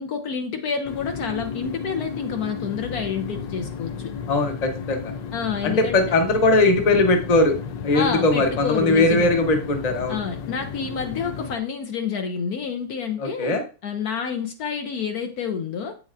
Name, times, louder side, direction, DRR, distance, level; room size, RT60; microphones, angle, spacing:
voice 1, 0.0-4.1 5.3-6.2 7.9-9.3 10.1-16.0, left 6 dB, 65° left, 1.1 m, -29 dB
sound 1, 0.8-11.6, left 6 dB, 85° left, 1.4 m, -33 dB
voice 2, 4.3-5.1 5.6-7.6 7.8-10.1 13.2-13.6, left 2 dB, 30° left, 0.8 m, -20 dB
8.4 x 6.5 x 2.5 m
omnidirectional pair, 1.9 m